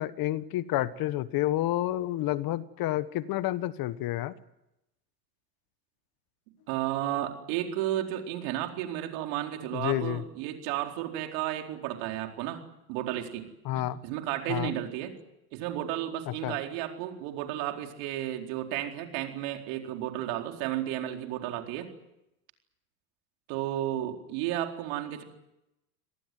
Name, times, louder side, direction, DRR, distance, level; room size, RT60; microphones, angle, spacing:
voice 1, 0.0-4.3 9.7-10.2 13.6-14.0 14.5-14.7 16.3-16.5, left 14 dB, 45° left, 15 dB, 1.3 m, -29 dB
voice 2, 6.7-12.6 12.9-13.5 13.7-15.1 15.5-21.9 23.5-25.2, right 12 dB, 65° right, 4 dB, 4.3 m, -33 dB
26.0 x 19.0 x 9.4 m, 0.89 s
supercardioid pair, 105°, 47 cm